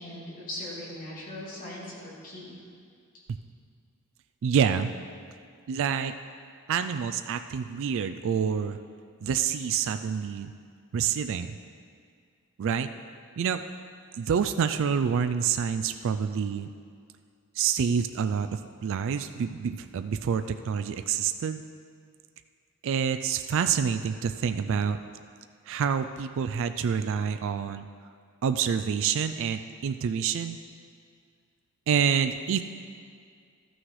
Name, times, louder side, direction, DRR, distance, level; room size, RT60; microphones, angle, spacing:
voice 1, 0.0-2.6, left 1 dB, 40° left, -6 dB, 2.6 m, -39 dB
voice 2, 4.4-4.9 5.7-6.2 6.7-8.8 9.2-10.5 10.9-11.6 12.6-12.9 13.4-13.6 14.1-16.7 17.6-21.6 22.8-25.0 25.7-27.9 28.4-30.6 31.9-32.6, right 7 dB, 65° right, 9 dB, 0.3 m, -27 dB
13.0 x 6.2 x 4.8 m, 2.2 s
head